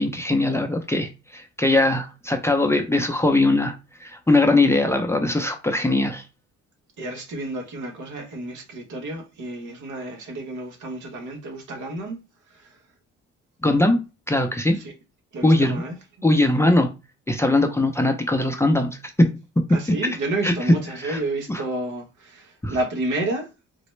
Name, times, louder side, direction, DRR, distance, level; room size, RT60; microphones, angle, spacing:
voice 1, 0.0-3.7 4.0-6.2 13.6-14.0 14.3-14.8 15.4-15.8 16.2-16.9 17.3-19.3 20.4-20.5 21.0-21.2 21.5-21.6 22.6-22.8, left 2 dB, 10° left, 0.5 m, -20 dB
voice 2, 7.0-12.2 12.5-12.7 14.8-14.9 15.3-15.9 19.7-23.5, right 2 dB, 75° right, 1.2 m, -30 dB
4.0 x 2.1 x 3.2 m
cardioid pair, 90°, 30 cm